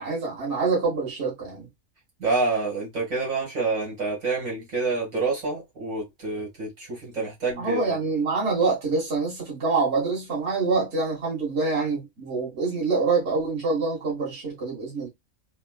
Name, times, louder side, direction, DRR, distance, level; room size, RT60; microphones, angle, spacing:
voice 1, 0.0-1.7 7.6-15.1, right 4 dB, 50° right, 1.9 m, -26 dB
voice 2, 2.2-7.9, right 3 dB, 70° right, 2.1 m, -27 dB
4.2 x 2.2 x 2.3 m
omnidirectional pair, 1.5 m